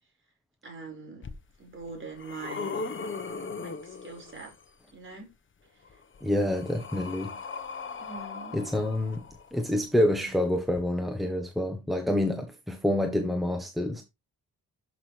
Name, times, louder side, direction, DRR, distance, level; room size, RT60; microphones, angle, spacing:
voice 1, 0.6-1.2 1.6-2.9 3.6-4.5 4.9-5.3 8.0-8.6, right 4 dB, 35° right, 5.1 m, -42 dB
sound 1, 1.2-1.3 1.9-4.6 5.8-9.7 10.7-10.8, left 4 dB, 35° left, 1.2 m, -39 dB
voice 2, 6.2-7.4 8.5-9.2 9.5-14.0, left 1 dB, ahead, 1.1 m, -27 dB
12.0 x 6.2 x 3.3 m
wide cardioid pair, 145°, 36 cm